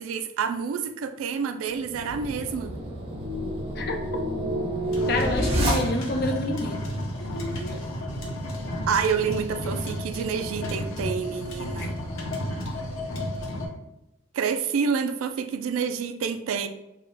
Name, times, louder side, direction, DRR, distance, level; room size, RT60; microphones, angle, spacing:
voice 1, 0.0-2.7 8.9-12.0 14.3-16.7, right 6 dB, 80° right, 0.3 m, -28 dB
sound 1, 1.8-6.3, right 1 dB, 30° right, 0.6 m, -28 dB
sound 2, 4.9-13.7, left 1 dB, 80° left, 0.8 m, -32 dB
voice 2, 5.1-6.8 7.2-7.9, left 2 dB, 50° left, 0.5 m, -29 dB
3.6 x 2.1 x 3.9 m
head